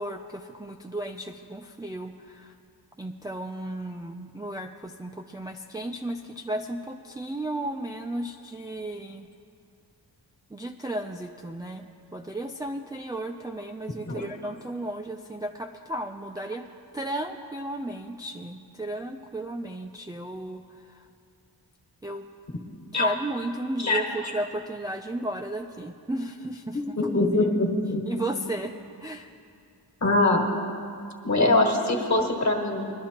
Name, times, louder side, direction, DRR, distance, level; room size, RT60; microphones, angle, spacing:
voice 1, 0.0-2.5 3.0-9.3 10.5-16.6 16.9-21.1 22.0-22.3 22.9-27.1 27.4-27.5 28.0-29.3, right 1 dB, 10° right, 2 dB, 0.4 m, -34 dB
voice 2, 26.7-28.0 30.0-30.4 31.2-32.9, left 2 dB, 40° left, 1 dB, 1.6 m, -23 dB
21.0 x 12.0 x 2.9 m, 2.4 s
wide cardioid pair, 125°, 43 cm